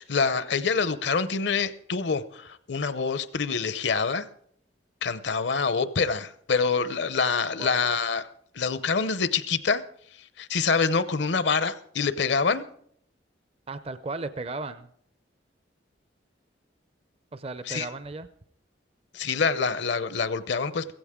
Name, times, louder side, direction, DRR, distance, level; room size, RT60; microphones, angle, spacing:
voice 1, 0.0-4.2 5.0-8.2 8.5-9.8 10.4-12.6 17.7-17.9 19.1-20.9, left 5 dB, 70° left, 0.7 m, -26 dB
voice 2, 13.7-14.9 17.3-18.3, right 3 dB, 35° right, 0.5 m, -35 dB
16.0 x 15.0 x 3.7 m
head